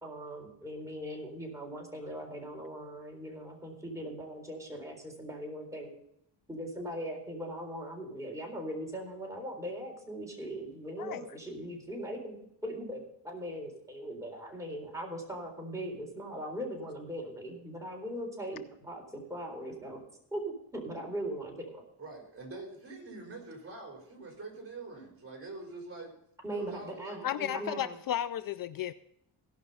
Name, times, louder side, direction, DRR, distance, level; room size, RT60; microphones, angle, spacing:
voice 1, 0.0-5.9 6.5-12.4 12.6-20.0 20.3-20.4 20.7-21.8 26.4-28.0, equal, 5° right, 0 dB, 3.9 m, -40 dB
voice 2, 22.0-26.2 26.5-27.2, right 3 dB, 30° right, 1 dB, 4.1 m, -45 dB
voice 3, 27.2-28.9, left 11 dB, 55° left, 15 dB, 0.5 m, -34 dB
17.0 x 5.9 x 5.5 m, 0.75 s
cardioid pair, 100°, 42 cm